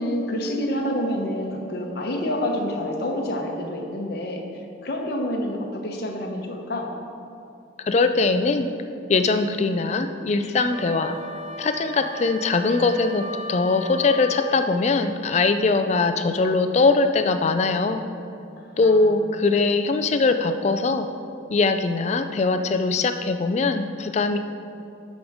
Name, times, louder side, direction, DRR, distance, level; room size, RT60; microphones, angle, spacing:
voice 1, 0.0-6.9 18.6-19.5 23.8-23.9, left 1 dB, 50° left, 2 dB, 0.9 m, -28 dB
voice 2, 7.9-8.7 9.1-11.1 11.6-18.0 18.8-21.1 21.5-24.4, left 3 dB, 35° left, 8 dB, 0.3 m, -21 dB
Wind instrument woodwind instrument, 10.7-14.7, left 1 dB, ahead, 1.3 m, -36 dB
13.0 x 5.1 x 3.5 m, 2.6 s
head